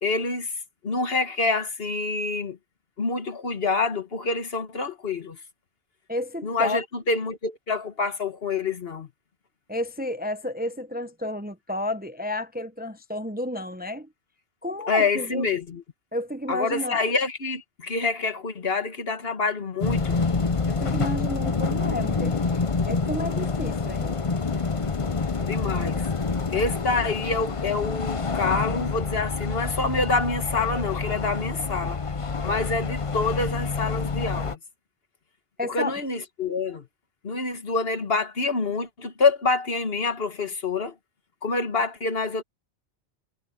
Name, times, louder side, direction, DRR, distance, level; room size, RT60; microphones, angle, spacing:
voice 1, 0.0-0.5 0.8-2.6 3.0-5.4 6.4-9.1 14.9-15.8 16.5-20.2 25.4-26.1 26.5-32.0 32.4-34.6 35.7-36.9 37.2-40.9 41.4-42.4, left 3 dB, 65° left, 1.8 m, -27 dB
voice 2, 6.1-6.8 9.7-14.1 14.6-15.5 16.1-17.0 20.6-22.4 22.8-24.2 25.0-25.1 35.6-36.0, left 1 dB, 10° right, 0.7 m, -31 dB
sound 1, 19.8-34.5, left 4 dB, 35° left, 0.8 m, -27 dB
omnidirectional pair, 1.1 m